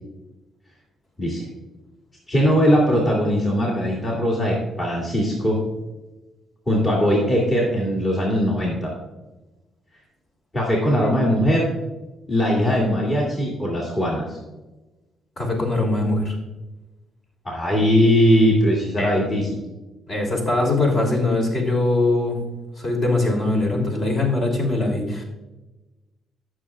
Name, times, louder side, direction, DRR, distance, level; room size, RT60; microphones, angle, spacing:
voice 1, 2.3-5.6 6.7-8.9 10.5-11.7 12.3-14.4 17.4-19.6, equal, 30° left, -3 dB, 2.2 m, -20 dB
voice 2, 15.4-16.3 19.0-19.2 20.1-22.4 22.8-25.2, left 2 dB, 50° left, 0 dB, 2.9 m, -22 dB
15.0 x 6.5 x 2.4 m, 1.1 s
cardioid pair, 90°, 0 cm